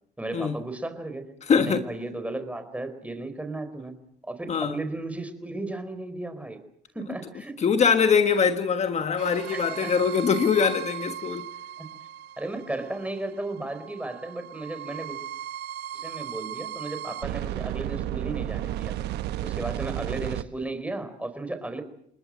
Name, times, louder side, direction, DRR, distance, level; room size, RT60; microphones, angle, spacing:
voice 1, 0.2-4.0 4.2-6.6 6.9-7.6 9.5-9.9 11.8-11.9 12.4-15.2 15.9-18.9 19.4-21.8, right 2 dB, 10° right, 4.4 m, -35 dB
voice 2, 1.4-1.8 4.5-4.8 7.6-11.5, left 6 dB, 40° left, 1.5 m, -23 dB
sound 1, 9.2-20.4, right 12 dB, 80° right, 1.1 m, -35 dB
29.0 x 20.5 x 7.6 m
cardioid pair, 110°, 17 cm